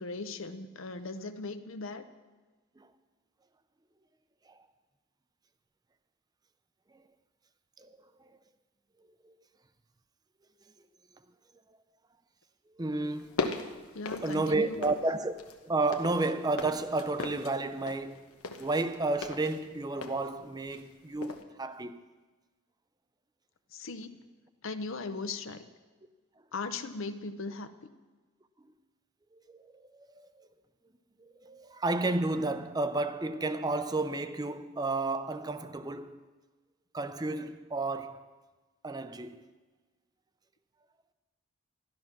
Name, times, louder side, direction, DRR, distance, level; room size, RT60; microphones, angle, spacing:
voice 1, 0.0-2.0 13.9-14.9 23.7-24.2 24.6-25.7 26.5-27.9, left 3 dB, 65° left, 0.7 m, -38 dB
voice 2, 12.8-13.5 14.2-18.3 18.6-22.0 29.3-30.5 31.2-36.2 36.9-38.3 38.8-39.4, right 2 dB, 20° right, 0.5 m, -32 dB
sound 1, 13.1-15.1 15.4-20.9 21.2-21.4, left 3 dB, 80° left, 1.1 m, -38 dB
13.5 x 11.5 x 5.9 m
head